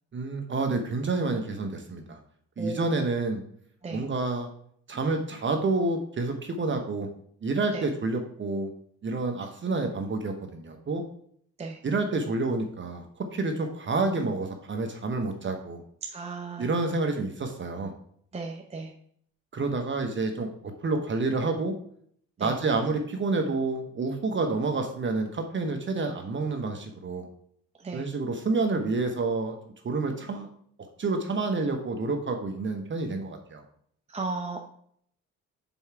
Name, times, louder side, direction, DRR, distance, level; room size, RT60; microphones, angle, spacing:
voice 1, 0.1-2.2 2.6-3.4 3.9-4.5 4.9-7.1 7.4-8.7 9.0-11.0 11.8-15.8 16.6-17.9 19.5-21.7 22.4-27.3 27.9-29.5 29.8-30.5 31.0-33.6, right 3 dB, 40° right, 5 dB, 1.0 m, -29 dB
voice 2, 2.6-3.1 3.8-4.0 7.7-7.8 11.6-11.8 16.0-16.7 18.3-18.9 22.4-22.5 27.8-28.1 34.1-34.7, right 3 dB, 20° right, 2 dB, 0.7 m, -35 dB
5.5 x 4.6 x 5.7 m, 0.64 s
cardioid pair, 90°, 30 cm